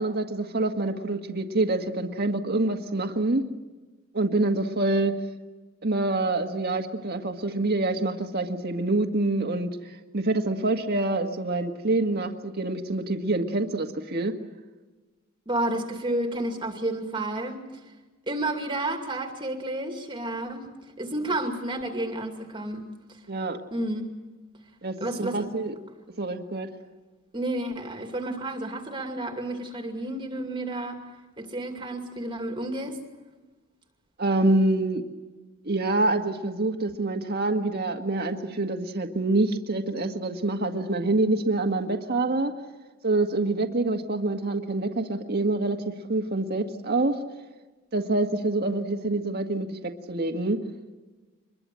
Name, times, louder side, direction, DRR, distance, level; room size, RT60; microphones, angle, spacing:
voice 1, 0.0-3.4 4.1-5.2 5.8-14.3 23.3-23.6 24.8-25.7 26.2-26.7 34.2-35.0 35.6-42.5 43.0-47.2 47.9-50.6, right 2 dB, 45° right, 3 dB, 1.8 m, -26 dB
voice 2, 15.5-17.6 18.3-20.7 21.0-23.2 23.7-24.1 25.0-25.5 27.3-31.0 31.4-33.0, right 1 dB, 20° right, 4 dB, 2.4 m, -31 dB
25.0 x 22.0 x 7.7 m, 1.2 s
head